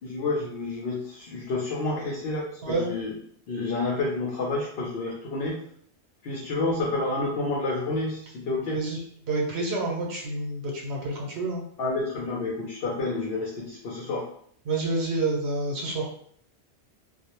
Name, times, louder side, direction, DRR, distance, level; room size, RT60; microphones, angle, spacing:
voice 1, 0.0-3.1 3.5-5.6 6.2-8.9 11.8-14.3, left 3 dB, 65° left, -4 dB, 0.8 m, -29 dB
voice 2, 8.7-9.0 9.3-11.6 14.7-16.1, right 2 dB, 80° right, -1 dB, 1.0 m, -28 dB
2.3 x 2.0 x 2.9 m, 0.63 s
omnidirectional pair, 1.1 m